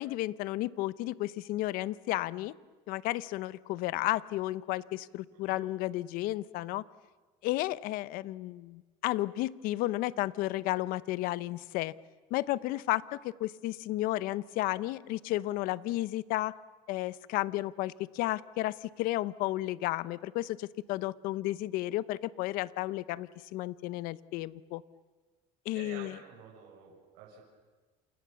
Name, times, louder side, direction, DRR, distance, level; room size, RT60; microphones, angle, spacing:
voice 1, 0.0-2.5 2.9-6.8 7.4-11.9 12.3-16.5 16.9-24.8 25.6-26.1, left 17 dB, 60° left, 17 dB, 0.8 m, -33 dB
voice 2, 25.7-27.4, right 6 dB, 70° right, -2 dB, 7.0 m, -49 dB
28.5 x 28.5 x 7.1 m, 1.3 s
cardioid pair, 135°, 16 cm